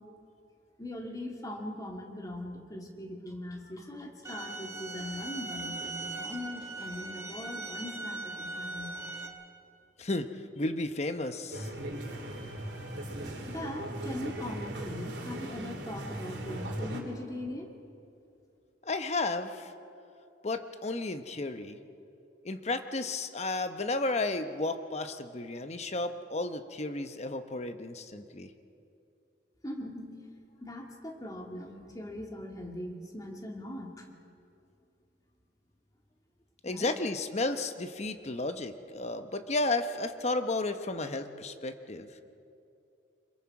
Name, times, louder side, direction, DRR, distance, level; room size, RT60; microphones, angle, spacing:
voice 1, 0.8-8.9 13.5-17.7 29.6-30.1 30.6-34.1 36.7-36.9, left 1 dB, 20° left, 1 dB, 2.1 m, -40 dB
sound 1, 4.2-9.3, right 2 dB, 15° right, 1.7 m, -39 dB
voice 2, 10.6-11.7 18.8-19.7 20.4-21.8 22.4-28.5 36.6-42.1, left 2 dB, 40° left, 8 dB, 0.9 m, -33 dB
sound 2, 11.5-17.0, right 1 dB, 75° right, 3.0 m, -38 dB
25.5 x 22.0 x 4.8 m, 2.6 s
head